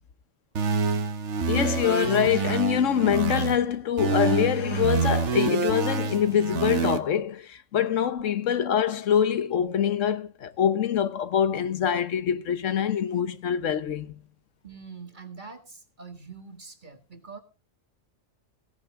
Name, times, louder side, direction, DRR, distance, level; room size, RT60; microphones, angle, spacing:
sound 1, 0.5-3.6 4.0-7.0, right 5 dB, 70° right, 1.3 m, -27 dB
voice 1, 1.5-14.2, left 9 dB, 85° left, 1.3 m, -25 dB
voice 2, 14.6-17.4, right 5 dB, 40° right, 2.1 m, -44 dB
17.0 x 11.0 x 3.7 m
omnidirectional pair, 1.3 m